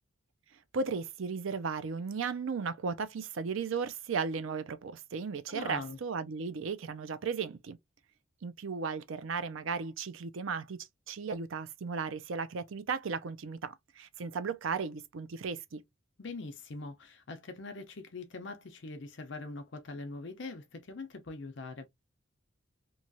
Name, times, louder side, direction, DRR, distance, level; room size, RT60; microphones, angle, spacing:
voice 1, 0.7-7.8 8.4-10.8 11.1-15.8, right 5 dB, 65° right, 0.4 m, -35 dB
voice 2, 5.5-6.0 16.2-21.9, left 3 dB, 55° left, 0.6 m, -42 dB
3.0 x 2.3 x 2.6 m
head